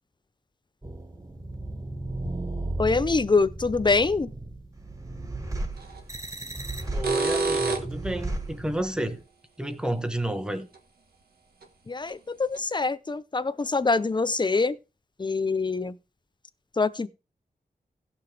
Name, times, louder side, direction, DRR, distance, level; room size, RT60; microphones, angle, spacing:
sound 1, 0.8-9.2, right 2 dB, 20° right, 1.5 m, -35 dB
voice 1, 2.8-4.3 11.9-14.8 15.2-15.9 16.8-17.1, left 4 dB, 30° left, 0.7 m, -24 dB
sound 2, 5.8-6.0 6.8-8.1 10.8-10.9 11.6-11.7 12.1-12.2 12.5-12.6, right 3 dB, 80° right, 1.8 m, -27 dB
voice 2, 6.9-9.2 9.6-10.7, right 1 dB, 5° right, 1.2 m, -30 dB
17.5 x 5.9 x 3.3 m
wide cardioid pair, 120°, 16 cm